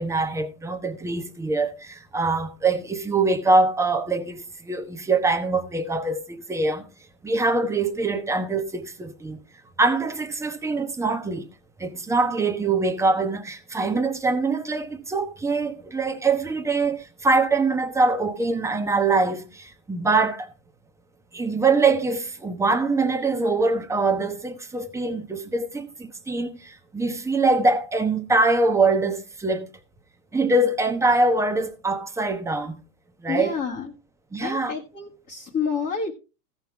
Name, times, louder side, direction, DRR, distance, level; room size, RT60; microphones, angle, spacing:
voice 1, 0.0-6.9 7.2-9.4 9.8-11.5 11.8-20.5 21.3-29.7 30.3-32.8 33.2-33.5 34.3-34.7, right 3 dB, 5° right, 1.0 m, -23 dB
voice 2, 33.3-33.9 34.4-36.1, left 5 dB, 20° left, 1.4 m, -29 dB
16.0 x 5.7 x 4.5 m
supercardioid pair, 145°, 43 cm